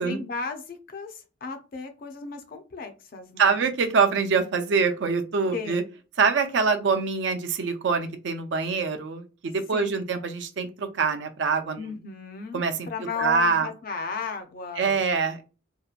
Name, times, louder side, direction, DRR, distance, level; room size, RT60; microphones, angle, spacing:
voice 1, 0.0-3.7 5.5-5.8 9.7-10.1 11.8-15.0, left 4 dB, 45° left, 6 dB, 0.4 m, -35 dB
voice 2, 3.4-5.8 6.2-11.8 12.5-12.9 13.2-13.7 14.8-15.4, right 5 dB, 60° right, 8 dB, 0.4 m, -24 dB
2.7 x 2.2 x 2.3 m, 0.33 s
head